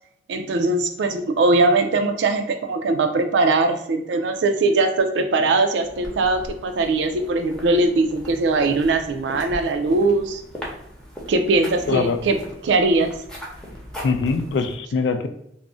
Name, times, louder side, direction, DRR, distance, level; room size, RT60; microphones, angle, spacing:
voice 1, 0.3-10.4 11.3-12.4 12.6-13.2, right 3 dB, 70° right, 6 dB, 0.4 m, -20 dB
sound 1, 5.8-14.8, equal, 5° left, 0.6 m, -38 dB
voice 2, 11.9-12.2 14.0-15.3, left 4 dB, 70° left, 7 dB, 0.3 m, -22 dB
2.4 x 2.1 x 3.6 m, 0.75 s
head